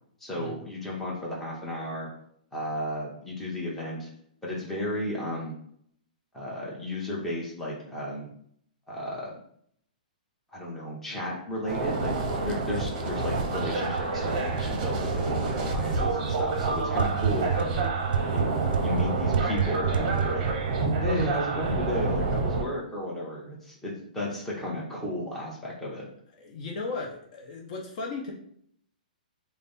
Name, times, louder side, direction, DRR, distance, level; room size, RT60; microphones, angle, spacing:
voice 1, 0.2-2.1 2.5-4.1 4.4-5.5 6.3-8.3 8.9-9.3 10.5-12.1 12.4-17.9 18.3-20.4 21.0-26.1, left 1 dB, 5° left, -5 dB, 0.9 m, -33 dB
sound 1, 11.6-22.6, right 3 dB, 40° right, 0.7 m, -29 dB
sound 2, 13.4-22.0, right 7 dB, 80° right, 0.4 m, -31 dB
voice 2, 26.4-28.3, left 3 dB, 50° left, -1 dB, 0.8 m, -36 dB
3.2 x 2.1 x 4.0 m, 0.65 s
hypercardioid pair, 145°, 5 cm